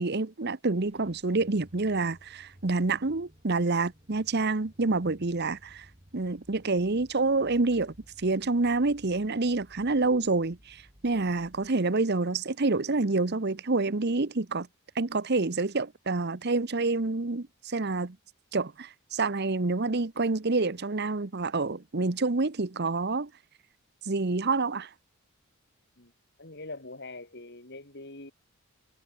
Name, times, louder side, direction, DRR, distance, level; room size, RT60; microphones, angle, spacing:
voice 1, 0.0-5.9 6.1-14.7 14.9-18.2 18.5-23.3 24.0-24.9, right 3 dB, 50° right, 1.0 m, -27 dB
sound 1, 0.7-11.7, equal, 30° right, 4.7 m, -57 dB
voice 2, 26.4-28.3, left 2 dB, 50° left, 3.9 m, -43 dB
head